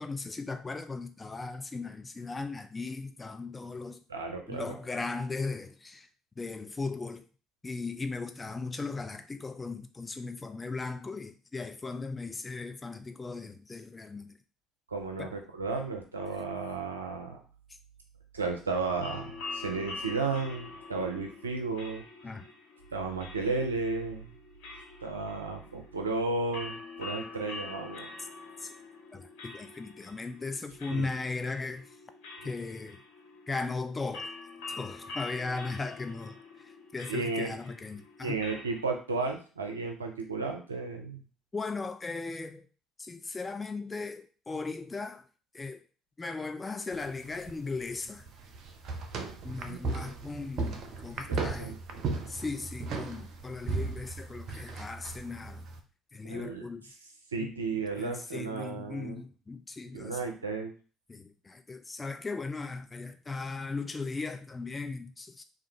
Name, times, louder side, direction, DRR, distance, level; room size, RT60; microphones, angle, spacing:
voice 1, 0.0-4.0 4.5-6.1 6.4-7.2 7.6-14.4 15.2-15.3 22.2-22.5 28.6-28.7 29.1-32.0 32.4-33.0 33.5-34.3 34.7-38.4 41.5-42.7 43.0-45.2 45.5-45.8 46.2-48.3 49.4-51.8 52.3-55.6 56.1-56.9 57.4-57.5 58.0-60.2 61.1-65.4, left 3 dB, 25° left, 0.4 m, -37 dB
voice 2, 4.1-4.7 14.9-17.4 18.3-22.0 22.9-24.3 25.0-28.1 30.9-31.1 32.4-32.5 37.1-37.5 38.2-41.2 49.7-49.8 51.3-52.0 56.2-56.7 57.3-59.2 59.9-60.7, right 3 dB, 90° right, 0.4 m, -33 dB
sound 1, 19.0-38.8, left 3 dB, 70° left, 1.2 m, -45 dB
sound 2, 46.9-55.8, right 3 dB, 55° right, 0.7 m, -36 dB
3.6 x 2.4 x 4.4 m
hypercardioid pair, 55°, 0 cm